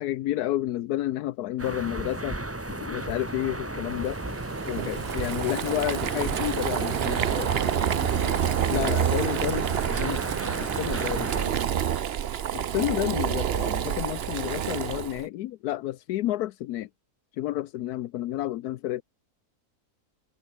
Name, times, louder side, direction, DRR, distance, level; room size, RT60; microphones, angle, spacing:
voice 1, 0.0-4.2 4.7-7.6 8.7-9.7 10.0-10.2 10.6-11.3 12.5-16.9 17.4-19.0, left 14 dB, 85° left, 1.2 m, -30 dB
sound 1, 1.6-11.5, right 2 dB, 10° right, 1.0 m, -34 dB
Boiling, 4.0-15.2, right 9 dB, 50° right, 0.8 m, -28 dB
voice 2, 7.2-8.3 10.9-12.0, left 2 dB, 35° left, 5.1 m, -47 dB
sound 2, 7.7-11.6 11.9-12.0 13.1-13.4 13.7-13.9, left 1 dB, 10° left, 5.2 m, -52 dB
omnidirectional pair, 1.6 m